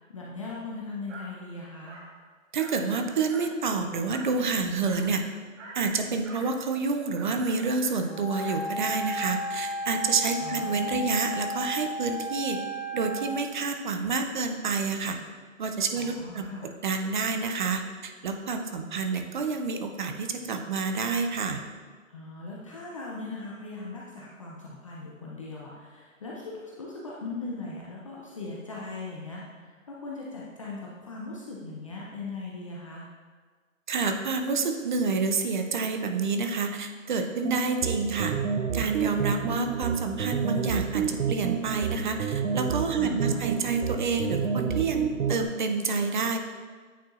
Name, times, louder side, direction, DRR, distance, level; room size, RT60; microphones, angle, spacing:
voice 1, 0.0-2.0 10.4-10.7 15.9-16.7 22.1-33.1 43.0-43.5, left 3 dB, 25° left, -5 dB, 0.5 m, -39 dB
Dog, 1.1-1.3 1.9-2.1 2.6-2.9 3.3-3.6 4.1-4.3 4.8-5.1 5.6-5.8 6.2-6.5 7.1-8.6, right 2 dB, 60° right, 1.6 m, -45 dB
voice 2, 2.5-5.2 5.7-12.6 12.9-15.2 15.6-16.5 16.8-21.6 33.9-38.4 38.7-46.4, right 4 dB, 35° right, 5 dB, 0.5 m, -28 dB
Wind instrument woodwind instrument, 8.0-13.3, equal, 55° left, 1.3 m, -34 dB
sound 1, 37.4-45.4, right 7 dB, 80° right, 0.6 m, -29 dB
9.0 x 4.4 x 2.5 m, 1.5 s
hypercardioid pair, 145°, 41 cm